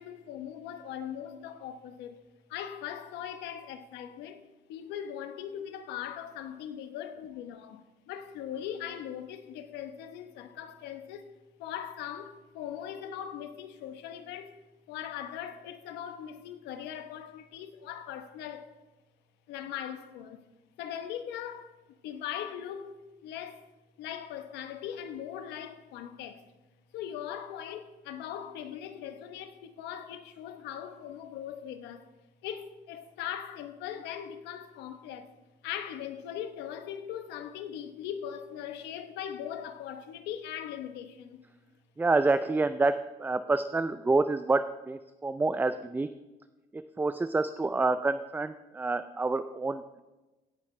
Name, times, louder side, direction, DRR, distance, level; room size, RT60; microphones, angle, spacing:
voice 1, 0.0-2.2 2.5-4.4 4.7-11.2 11.6-14.6 14.9-18.7 19.5-20.4 20.8-21.7 22.0-23.6 24.0-26.4 26.9-32.0 32.4-35.3 35.6-41.4, left 9 dB, 90° left, 1.0 m, -40 dB
voice 2, 42.0-42.9 43.2-46.1 46.7-50.0, right 3 dB, 10° right, 0.4 m, -28 dB
17.0 x 8.3 x 3.2 m
cardioid pair, 110°, 17 cm